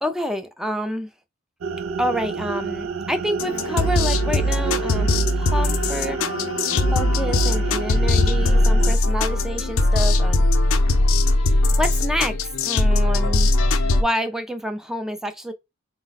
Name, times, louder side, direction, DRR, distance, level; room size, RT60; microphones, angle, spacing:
voice 1, 0.0-1.1 2.0-6.2 6.9-10.5 11.4-13.5 13.8-15.5, equal, ahead, 0.4 m, -28 dB
sound 1, 1.6-9.0, right 6 dB, 80° right, 0.4 m, -30 dB
sound 2, 3.4-14.0, left 2 dB, 90° left, 0.6 m, -20 dB
4.8 x 2.2 x 4.0 m
head